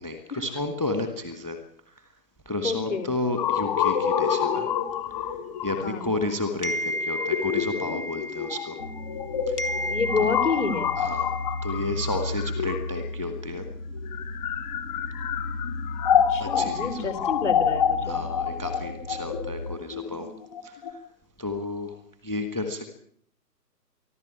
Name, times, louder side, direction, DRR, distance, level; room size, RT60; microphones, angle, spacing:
voice 1, 0.0-1.6 2.5-4.7 5.6-8.8 9.5-9.6 10.2-10.3 11.0-11.4 11.6-13.6 16.4-17.1 18.0-20.3 20.6-21.0 21.4-21.9 22.2-22.9, left 2 dB, 5° left, 8 dB, 1.2 m, -31 dB
voice 2, 2.6-3.1 5.7-6.1 9.9-10.9 16.3-18.2, left 5 dB, 45° left, 13 dB, 3.7 m, -28 dB
sound 1, 3.4-13.2 14.0-20.9, left 8 dB, 25° left, 3.8 m, -27 dB
sound 2, 6.6-9.2 9.6-12.1, equal, 65° left, 2.8 m, -33 dB
sound 3, 8.8-19.8, left 2 dB, 90° left, 3.4 m, -35 dB
24.5 x 14.5 x 8.7 m, 0.62 s
figure-of-eight pair, 140°, 50 cm